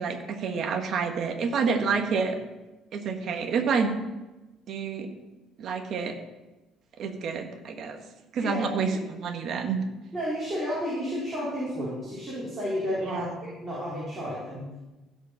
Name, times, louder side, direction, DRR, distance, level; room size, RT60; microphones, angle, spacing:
voice 1, 0.0-2.4 2.9-4.0 4.7-5.1 5.6-6.1 7.0-8.0 8.3-9.8 13.0-13.3, right 5 dB, 50° right, 5 dB, 1.4 m, -28 dB
voice 2, 8.4-9.0 10.1-14.7, equal, 20° right, -8 dB, 3.8 m, -32 dB
16.0 x 5.3 x 5.7 m, 1.1 s
cardioid pair, 135°, 0 cm